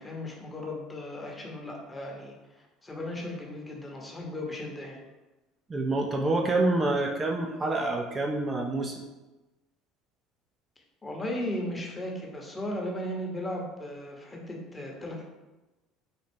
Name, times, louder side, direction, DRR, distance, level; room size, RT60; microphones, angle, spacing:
voice 1, 0.0-5.0 11.0-15.2, left 1 dB, 20° left, -1 dB, 1.0 m, -36 dB
voice 2, 5.7-8.9, right 2 dB, 30° right, 1 dB, 0.5 m, -27 dB
4.1 x 2.4 x 3.4 m, 1.1 s
hypercardioid pair, 75°, 0 cm